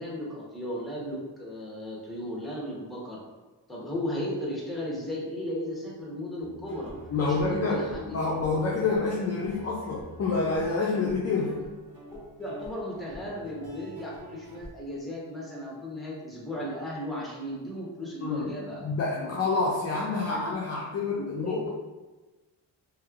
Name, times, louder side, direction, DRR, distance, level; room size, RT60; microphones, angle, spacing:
voice 1, 0.0-3.2 3.7-6.9 7.2-8.7 11.4-11.5 12.4-18.8 20.3-20.6 21.1-21.7, left 1 dB, ahead, -5 dB, 0.9 m, -35 dB
Guitar, 6.4-14.7, right 1 dB, 75° right, 1.0 m, -47 dB
voice 2, 7.1-11.6 18.2-21.7, left 3 dB, 35° left, -4 dB, 0.4 m, -28 dB
3.1 x 2.8 x 2.4 m, 1.2 s
wide cardioid pair, 105°, 45 cm